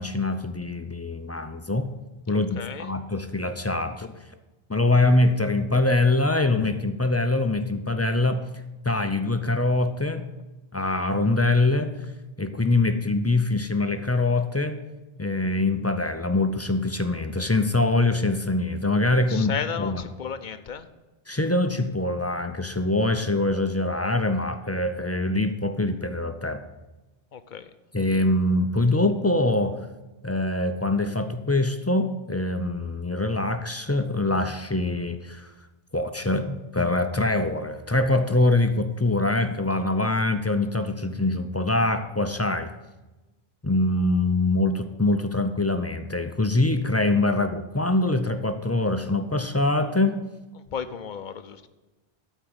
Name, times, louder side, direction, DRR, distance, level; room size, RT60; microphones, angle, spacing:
voice 1, 0.0-1.9 2.3-4.1 4.7-8.5 8.8-10.2 10.7-11.9 12.4-14.8 15.2-20.0 21.3-26.6 27.9-29.8 30.2-35.5 35.9-42.7 43.6-50.2, left 2 dB, 20° left, 8 dB, 0.4 m, -24 dB
voice 2, 2.3-3.0 19.3-20.9 27.3-27.7 50.5-51.7, left 7 dB, 55° left, 11 dB, 0.7 m, -34 dB
12.5 x 4.5 x 8.0 m, 1.1 s
omnidirectional pair, 1.0 m